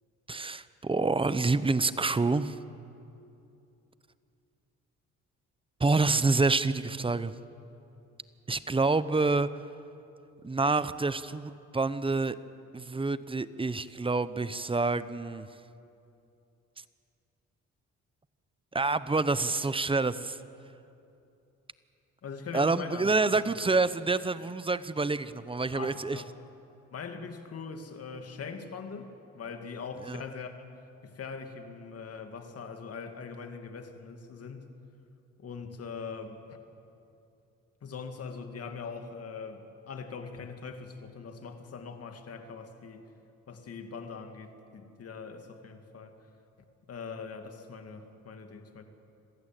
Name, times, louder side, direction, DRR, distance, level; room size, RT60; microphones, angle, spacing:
voice 1, 0.3-2.6 5.8-7.3 8.5-9.5 10.4-12.4 12.7-15.5 18.7-20.4 22.5-26.2 30.0-30.2, right 3 dB, 15° right, 15 dB, 0.9 m, -27 dB
voice 2, 22.2-23.7 25.7-26.3 26.9-34.7 35.4-36.6 37.8-43.0 43.5-46.1 46.9-48.8, left 5 dB, 50° left, 6 dB, 2.4 m, -42 dB
26.0 x 15.5 x 9.1 m, 2.7 s
cardioid pair, 90°, 30 cm